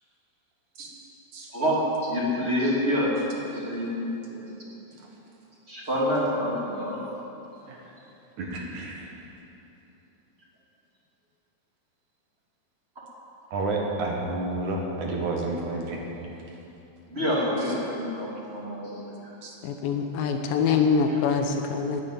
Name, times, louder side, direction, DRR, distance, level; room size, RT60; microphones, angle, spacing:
voice 1, 1.5-3.2 3.5-4.5 5.7-7.0 17.1-19.1 21.1-21.2, equal, 20° right, -6 dB, 2.6 m, -27 dB
voice 2, 8.4-9.1 13.5-16.0 19.4-19.5, right 2 dB, 60° right, -1 dB, 2.6 m, -30 dB
voice 3, 19.6-22.0, left 5 dB, 75° left, 5 dB, 2.5 m, -24 dB
12.0 x 10.0 x 9.3 m, 3.0 s
omnidirectional pair, 4.2 m